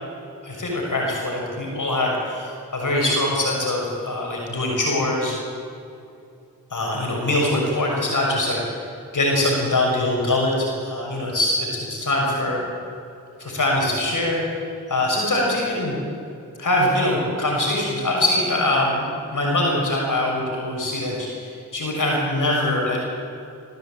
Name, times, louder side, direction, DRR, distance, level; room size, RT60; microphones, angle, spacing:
voice 1, 0.4-5.4 6.7-8.6 9.1-12.6 13.4-14.4 14.9-16.0 16.6-23.0, left 1 dB, 55° left, -2 dB, 6.4 m, -23 dB
19.5 x 16.0 x 9.0 m, 2.6 s
cardioid pair, 45°, 37 cm